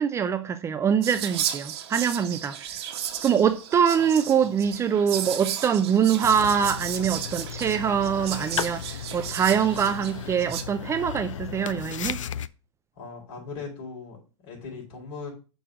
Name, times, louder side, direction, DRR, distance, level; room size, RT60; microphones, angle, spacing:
voice 1, 0.0-2.6 3.2-12.2, right 7 dB, 20° right, 0.5 m, -24 dB
Whispering, 1.0-10.6, right 10 dB, 55° right, 1.2 m, -34 dB
sound 1, 6.2-12.5, left 9 dB, 90° left, 0.4 m, -35 dB
voice 2, 13.0-15.3, left 4 dB, 50° left, 4.1 m, -39 dB
6.4 x 3.9 x 6.1 m
hypercardioid pair, 120°, 16 cm